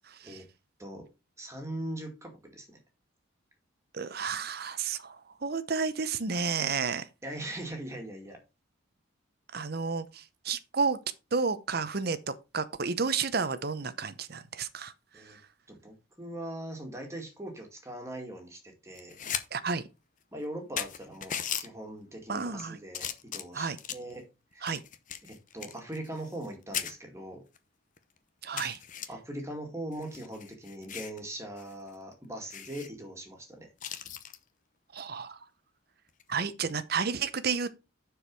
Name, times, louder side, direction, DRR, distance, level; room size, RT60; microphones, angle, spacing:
voice 1, 0.1-0.4 3.9-7.1 9.5-11.0 11.3-14.9 15.3-15.4 19.5-19.8 22.3-22.8 23.5-23.8 24.6-24.8 28.4-28.8 34.9-35.4 36.3-37.7, right 5 dB, 50° right, 0.8 m, -31 dB
voice 2, 1.4-2.8 7.2-8.4 15.1-15.4 15.7-19.2 20.3-24.3 24.5-24.7 25.2-27.4 29.1-33.7, right 1 dB, 15° right, 2.1 m, -41 dB
sound 1, 18.9-19.4 19.8-19.9 20.4-20.5 20.8-21.7 22.3-22.6 22.9-24.1 24.7-26.5 26.7-26.9 27.5-27.6 28.0-28.1 28.6-29.1 29.9-31.2 31.6-31.7 32.0-32.1 32.5-32.9 33.8-34.4 36.1-36.3, left 9 dB, 40° left, 0.8 m, -37 dB
10.0 x 4.8 x 4.6 m
head